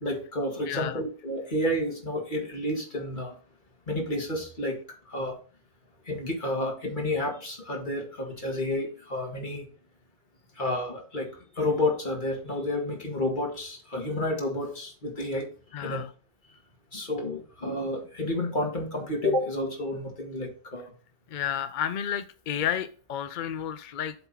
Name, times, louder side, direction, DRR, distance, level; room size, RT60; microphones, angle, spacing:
voice 1, 0.0-3.4 3.9-4.8 5.1-5.3 6.1-9.7 10.6-15.5 15.8-16.0 16.9-20.9, left 1 dB, 40° left, 1 dB, 2.1 m, -30 dB
voice 2, 0.7-1.0 15.7-16.1 21.3-24.1, left 9 dB, 60° left, 11 dB, 0.5 m, -31 dB
7.9 x 3.5 x 5.6 m, 0.39 s
omnidirectional pair, 1.4 m